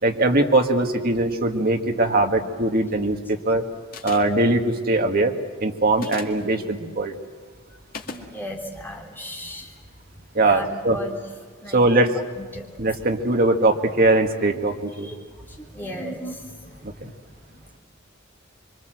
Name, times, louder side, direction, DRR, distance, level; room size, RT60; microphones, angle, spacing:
voice 1, 0.0-3.6 4.0-7.1 10.3-11.0 11.7-12.2 12.8-15.1 16.8-16.9, right 2 dB, 45° right, 4 dB, 1.7 m, -21 dB
sound 1, 3.9-4.4 5.9-6.4 7.9-8.3, left 3 dB, 45° left, 2.0 m, -35 dB
voice 2, 8.0-9.7 10.4-11.2 11.6-11.8 12.4-12.7 15.0-17.1 17.5-17.8, equal, 10° left, -1 dB, 3.3 m, -36 dB
25.5 x 24.0 x 7.8 m, 1.5 s
head